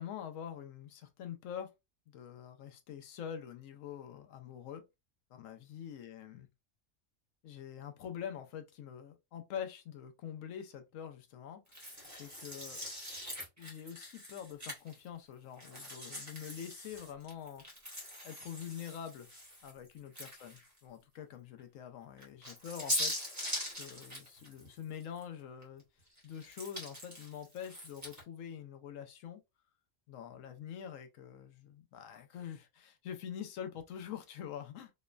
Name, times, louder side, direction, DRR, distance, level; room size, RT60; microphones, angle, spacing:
voice 1, 0.0-1.7 2.1-4.8 5.3-6.5 7.4-12.8 13.6-17.6 18.2-19.3 19.6-20.6 20.8-23.1 23.8-25.8 26.2-29.4 30.1-34.9, left 9 dB, 85° left, 1.0 m, -45 dB
sound 1, 11.7-15.1 15.6-20.8 21.2-21.3 22.2-25.2 25.6-28.2, equal, 15° right, 0.9 m, -42 dB
3.0 x 2.1 x 2.3 m
omnidirectional pair, 1.3 m